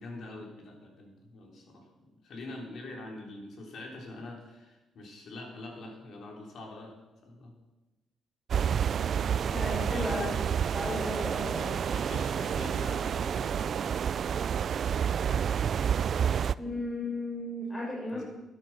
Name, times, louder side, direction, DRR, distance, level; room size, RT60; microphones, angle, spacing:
voice 1, 0.0-7.0 7.2-7.5 9.2-10.4 11.9-13.7 18.1-18.2, left 2 dB, 65° left, 1 dB, 3.7 m, -44 dB
sound 1, 8.5-16.5, right 8 dB, 55° right, 0.3 m, -29 dB
voice 2, 9.5-10.5 10.7-11.8 16.5-18.2, left 1 dB, 25° left, -4 dB, 4.4 m, -35 dB
12.5 x 10.5 x 6.0 m, 1.1 s
cardioid pair, 90°, 0 cm